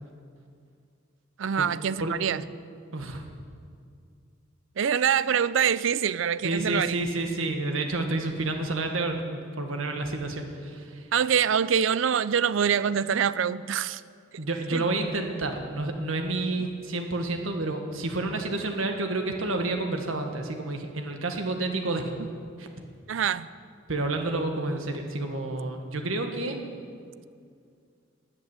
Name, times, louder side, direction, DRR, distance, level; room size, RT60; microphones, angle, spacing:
voice 1, 1.4-2.4 4.8-6.9 11.1-14.0 14.7-14.8 23.1-23.5, right 8 dB, 70° right, 17 dB, 0.4 m, -25 dB
voice 2, 6.4-11.1 14.4-22.1 22.6-22.7 23.9-26.6, right 2 dB, 90° right, 4 dB, 1.6 m, -29 dB
13.5 x 8.4 x 9.5 m, 2.2 s
head